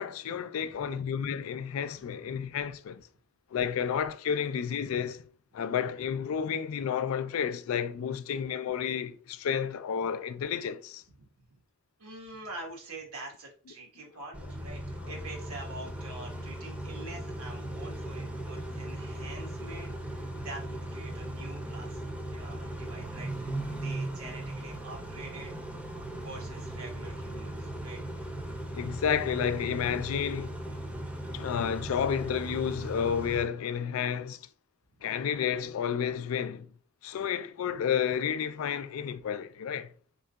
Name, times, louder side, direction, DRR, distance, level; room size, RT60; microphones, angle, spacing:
voice 1, 0.0-3.1 3.5-5.2 5.5-11.0 15.0-15.1 28.7-30.6 31.3-34.5 35.0-36.7 37.0-39.9, left 8 dB, 80° left, 0.3 m, -31 dB
voice 2, 12.0-25.6 26.1-28.0 37.7-37.8, right 2 dB, 85° right, 1.3 m, -46 dB
Car / Idling / Accelerating revving vroom, 14.3-33.4, right 1 dB, 5° right, 0.6 m, -38 dB
3.7 x 3.7 x 2.2 m
head